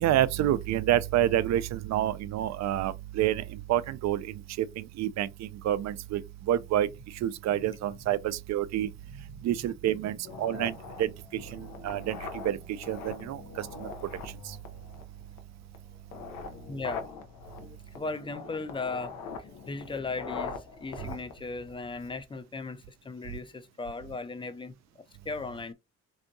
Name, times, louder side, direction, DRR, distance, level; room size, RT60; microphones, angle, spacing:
voice 1, 0.0-6.2 6.5-6.9 7.2-8.9 9.4-12.2 12.4-13.9 14.5-14.6, right 12 dB, 65° right, 0.4 m, -28 dB
sound 1, 10.2-22.2, left 5 dB, 90° left, 0.7 m, -42 dB
voice 2, 10.7-11.0 12.1-12.2 16.7-17.1 17.9-25.7, left 3 dB, 15° left, 0.4 m, -38 dB
3.4 x 2.7 x 2.6 m
cardioid pair, 90°, 30 cm